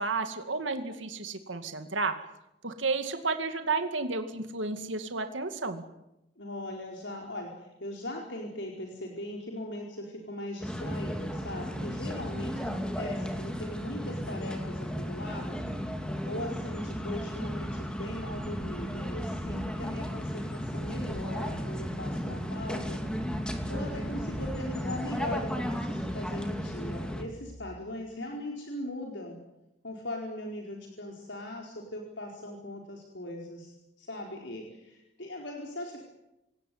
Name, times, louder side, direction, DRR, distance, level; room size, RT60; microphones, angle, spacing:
voice 1, 0.0-2.2 2.6-5.8, right 3 dB, 90° right, 7 dB, 2.4 m, -32 dB
voice 2, 6.4-15.6 16.2-23.1 23.7-29.4 29.8-36.0, left 1 dB, 75° left, 0 dB, 4.7 m, -39 dB
sound 1, 10.6-27.2, equal, 5° left, 2.7 m, -34 dB
sound 2, 15.4-28.0, equal, 50° right, 3.4 m, -53 dB
26.5 x 18.0 x 9.6 m, 0.91 s
head